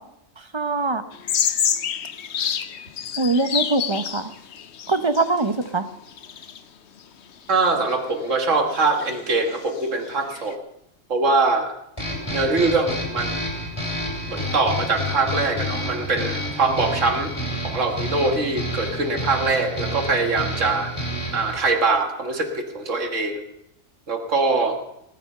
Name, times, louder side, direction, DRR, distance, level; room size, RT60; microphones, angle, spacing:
voice 1, 0.4-1.0 3.2-4.3 4.9-5.9, right 3 dB, 30° right, 10 dB, 0.6 m, -23 dB
sound 1, 1.1-5.7 6.1-6.6 7.9-8.0 8.3-8.4 8.7-10.5, left 8 dB, 60° left, 1.0 m, -28 dB
voice 2, 7.5-10.6 11.1-11.8 12.3-13.4 14.3-17.3 17.6-20.9 21.3-23.4 24.1-24.8, right 3 dB, 70° right, 4 dB, 2.1 m, -23 dB
sound 2, 12.0-21.6, equal, 20° left, 3.7 m, -29 dB
19.0 x 11.0 x 5.5 m, 0.80 s
omnidirectional pair, 1.4 m